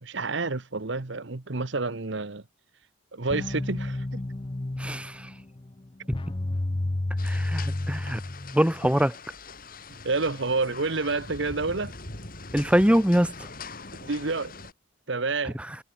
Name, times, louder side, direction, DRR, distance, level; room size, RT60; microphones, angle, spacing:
voice 1, 0.0-2.4 3.1-4.2 9.9-11.9 14.0-14.6 15.1-15.6, right 3 dB, 65° right, 1.2 m, -29 dB
sound 1, 3.3-8.9, left 1 dB, 25° left, 0.6 m, -31 dB
voice 2, 4.8-5.3 6.1-6.2 7.2-8.2 8.5-9.1 12.5-13.3, equal, 5° right, 1.4 m, -23 dB
sound 2, 7.2-14.7, left 3 dB, 45° left, 5.1 m, -42 dB
head